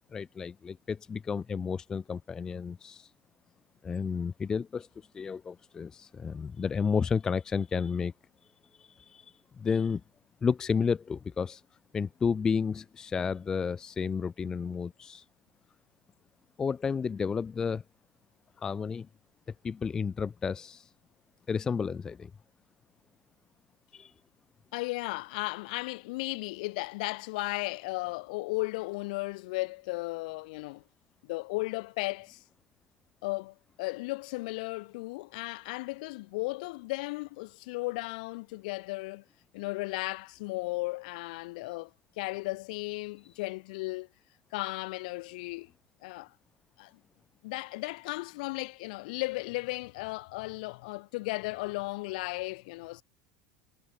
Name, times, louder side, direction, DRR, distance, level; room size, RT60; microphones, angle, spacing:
voice 1, 0.1-3.1 3.8-4.9 5.1-8.1 8.8-10.0 10.4-11.6 11.9-15.2 16.6-17.8 18.6-19.1 19.6-20.9 21.5-22.3 23.9-24.1, left 6 dB, 15° left, 0.3 m, -31 dB
voice 2, 24.7-30.8 31.2-32.4 33.2-39.2 39.5-41.9 42.2-44.1 44.5-45.7 46.0-46.3 46.8-46.9 47.4-53.0, left 23 dB, 70° left, 1.8 m, -35 dB
supercardioid pair, 160°, 4 cm